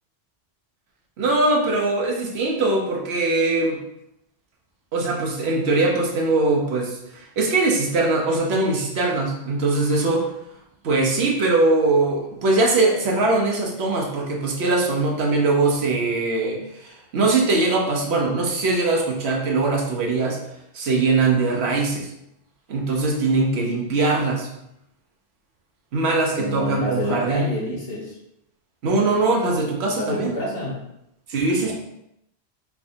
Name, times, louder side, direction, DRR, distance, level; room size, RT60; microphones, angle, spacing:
voice 1, 1.2-3.8 4.9-10.3 10.8-20.4 20.7-22.1 22.7-24.5 25.9-27.5 28.8-30.3 31.3-31.7, right 3 dB, 75° right, 0 dB, 1.0 m, -21 dB
voice 2, 26.4-28.2 29.9-30.9 31.6-31.7, left 1 dB, 65° left, -4 dB, 1.2 m, -28 dB
3.5 x 3.4 x 2.6 m, 0.80 s
omnidirectional pair, 1.1 m